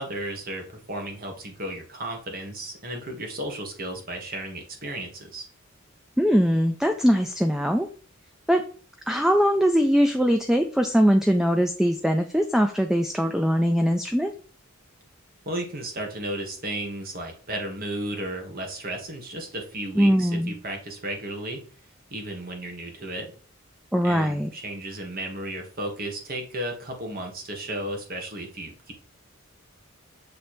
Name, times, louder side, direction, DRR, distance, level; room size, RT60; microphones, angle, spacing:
voice 1, 0.0-5.5 15.4-21.6 22.1-23.3 24.0-28.9, right 1 dB, 45° right, 3 dB, 1.4 m, -34 dB
voice 2, 6.2-7.9 8.5-8.6 9.1-14.3 20.0-20.6 23.9-24.5, equal, ahead, 6 dB, 0.3 m, -21 dB
6.8 x 3.2 x 4.4 m, 0.41 s
head